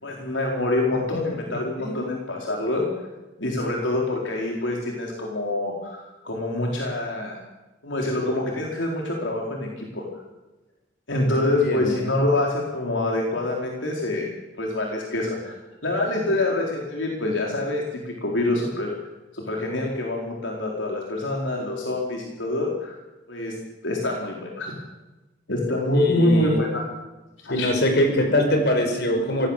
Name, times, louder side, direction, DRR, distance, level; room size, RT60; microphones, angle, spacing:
voice 1, 0.0-2.9 3.4-7.4 7.8-10.2 11.1-14.3 14.6-15.6 15.8-18.9 19.3-23.0 23.3-23.6 23.8-24.7 25.5-26.8 27.4-27.7, left 2 dB, 80° left, -1 dB, 4.2 m, -26 dB
voice 2, 11.3-12.0 25.9-26.6 27.5-29.5, left 1 dB, 60° left, 4 dB, 5.5 m, -23 dB
24.5 x 18.5 x 7.4 m, 1.1 s
head